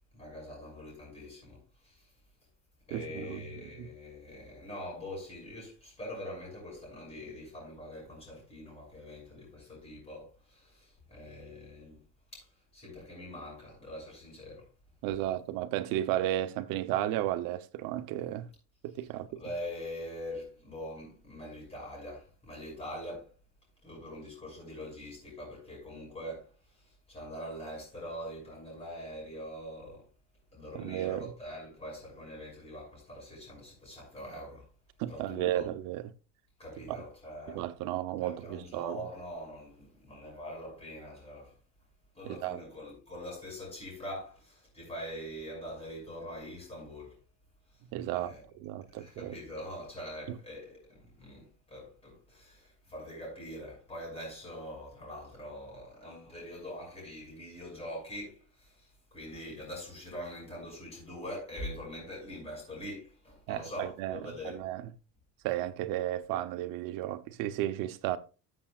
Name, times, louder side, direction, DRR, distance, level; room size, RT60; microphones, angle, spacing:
voice 1, 0.1-2.1 2.9-12.0 12.3-12.5 12.7-14.7 19.4-23.3 23.8-30.1 30.5-34.7 35.1-35.7 36.6-37.7 38.2-41.5 42.1-47.2 48.1-48.4 48.9-64.7, equal, 20° left, 6.1 m, -43 dB
voice 2, 2.9-3.4 3.8-3.9 15.0-18.5 18.8-19.4 30.7-31.3 35.0-36.0 36.9-37.0 37.5-39.0 42.2-42.6 47.9-49.4 50.3-50.4 63.5-64.2 64.4-64.9 65.4-68.2, right 13 dB, 85° right, 0.9 m, -33 dB
13.5 x 7.5 x 2.5 m
cardioid pair, 175°, 33 cm